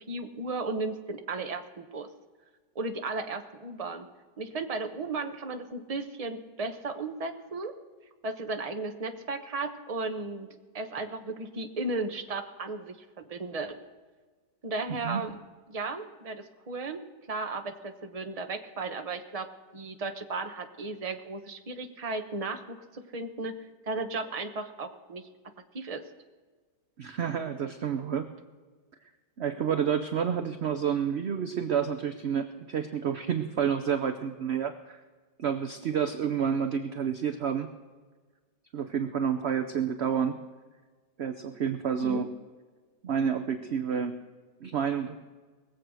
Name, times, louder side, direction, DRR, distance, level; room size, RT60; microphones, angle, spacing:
voice 1, 0.0-2.1 2.7-4.1 4.4-7.7 8.2-10.5 10.7-13.8 14.6-15.4 15.7-17.0 17.3-23.6 23.9-25.3 25.7-26.1 42.0-42.3, right 3 dB, 30° right, 7 dB, 0.8 m, -35 dB
voice 2, 14.9-15.2 27.0-28.3 29.4-35.0 35.4-37.7 38.7-40.4 41.2-42.3 43.0-44.2 44.6-45.2, right 7 dB, 60° right, 8 dB, 0.7 m, -29 dB
20.5 x 7.9 x 6.3 m, 1.4 s
omnidirectional pair, 1.9 m